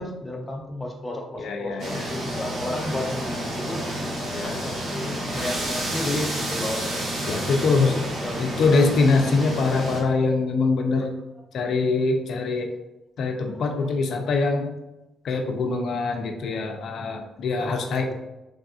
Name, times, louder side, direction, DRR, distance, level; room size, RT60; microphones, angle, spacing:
voice 1, 0.0-3.9 4.4-7.1 7.6-8.9 14.3-14.4 17.0-17.2 17.6-18.1, left 1 dB, 15° left, 1 dB, 0.6 m, -33 dB
voice 2, 1.4-2.1 4.3-4.7 6.8-6.9 7.3-7.9 8.4-11.1 11.5-12.7 13.2-14.7 15.2-18.1, left 3 dB, 65° left, 4 dB, 0.5 m, -23 dB
sound 1, 1.8-10.0, equal, 50° right, 0.9 m, -30 dB
3.4 x 2.5 x 2.4 m, 0.95 s
cardioid pair, 90°, 0 cm